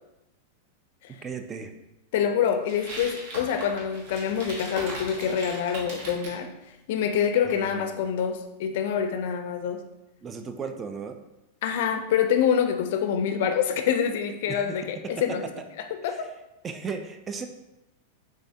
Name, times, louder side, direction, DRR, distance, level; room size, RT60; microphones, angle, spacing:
voice 1, 1.2-1.7 7.6-8.0 10.2-11.2 14.5-14.6 15.0-15.1 16.6-17.5, right 5 dB, 20° right, 7 dB, 0.3 m, -35 dB
voice 2, 2.1-6.5 6.9-9.8 11.6-15.4 15.8-16.3, left 8 dB, 60° left, 7 dB, 0.4 m, -26 dB
sound 1, 2.7-6.4, right 1 dB, 50° right, 1.0 m, -39 dB
3.6 x 3.2 x 2.7 m, 0.93 s
supercardioid pair, 150°, 0 cm